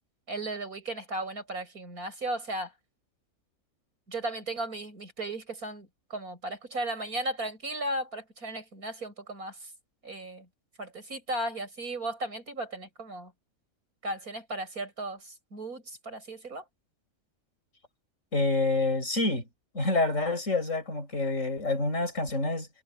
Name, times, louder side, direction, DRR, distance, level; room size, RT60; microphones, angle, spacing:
voice 1, 0.3-2.7 4.1-9.7 10.0-10.5 10.8-13.3 14.0-16.6, right 1 dB, 90° right, 7.5 m, -36 dB
voice 2, 18.3-19.5 19.7-22.7, left 2 dB, 60° left, 5.5 m, -27 dB
omnidirectional pair, 1.5 m